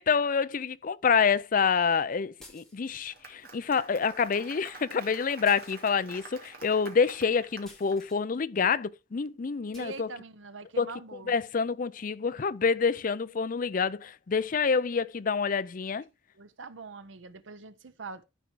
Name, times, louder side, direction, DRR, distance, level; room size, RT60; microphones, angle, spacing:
voice 1, 0.0-10.1 10.8-10.9 11.3-16.0, left 5 dB, 45° left, 0.5 m, -27 dB
sound 1, 2.4-3.1 5.4-6.2 7.6-8.2 9.7-10.0, left 1 dB, 5° left, 2.4 m, -54 dB
Applause, 2.8-8.0, right 3 dB, 50° right, 2.2 m, -48 dB
voice 2, 9.7-11.3 16.3-18.2, right 4 dB, 85° right, 0.8 m, -43 dB
13.5 x 4.6 x 4.5 m
head